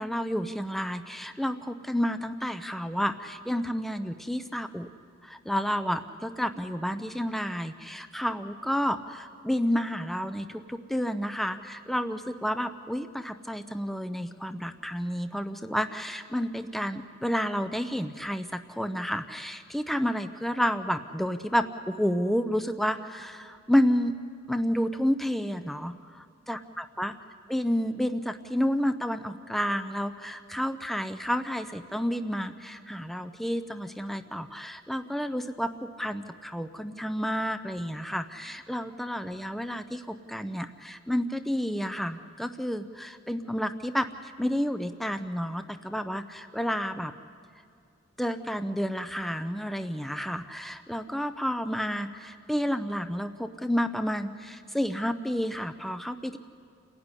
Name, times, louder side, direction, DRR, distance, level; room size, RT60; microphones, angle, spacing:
voice 1, 0.0-4.9 5.2-24.1 24.5-27.2 27.5-47.1 48.2-56.4, equal, ahead, 9 dB, 0.7 m, -30 dB
28.5 x 16.5 x 9.9 m, 2.3 s
head